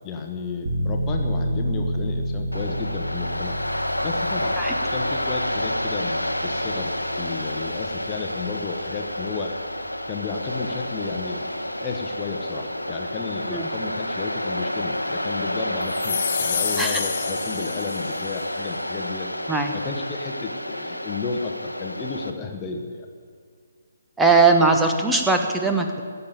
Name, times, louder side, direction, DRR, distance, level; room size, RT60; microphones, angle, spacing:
voice 1, 0.0-3.6 4.0-4.6 4.9-9.6 10.1-19.3 19.7-23.1, left 4 dB, 20° left, 2 dB, 1.3 m, -33 dB
sound 1, 0.6-13.2 13.5-13.6, equal, 55° right, 2.8 m, -32 dB
Waves surf, 2.5-22.3, left 1 dB, 85° left, 1.0 m, -29 dB
sound 2, 15.9-18.4, left 9 dB, 40° left, 0.6 m, -29 dB
voice 2, 24.2-26.0, right 3 dB, 5° right, 3 dB, 1.2 m, -19 dB
15.5 x 7.0 x 9.2 m, 2.1 s
figure-of-eight pair, 135°, 0 cm